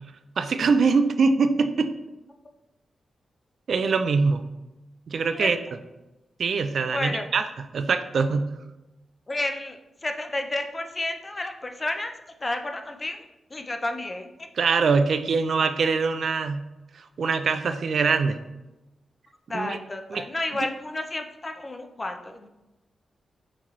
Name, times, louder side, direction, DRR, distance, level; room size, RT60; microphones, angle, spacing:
voice 1, 0.4-1.9 3.7-4.4 5.1-5.6 6.4-7.4 7.7-8.5 14.6-16.6 17.2-18.4 19.5-19.8 20.1-20.2, right 4 dB, 65° right, 9 dB, 0.3 m, -23 dB
voice 2, 6.9-7.3 9.3-12.1 12.4-13.2 13.5-14.5 19.5-22.5, left 2 dB, 25° left, 5 dB, 0.4 m, -31 dB
5.9 x 2.9 x 3.0 m, 1.0 s
cardioid pair, 100°, 0 cm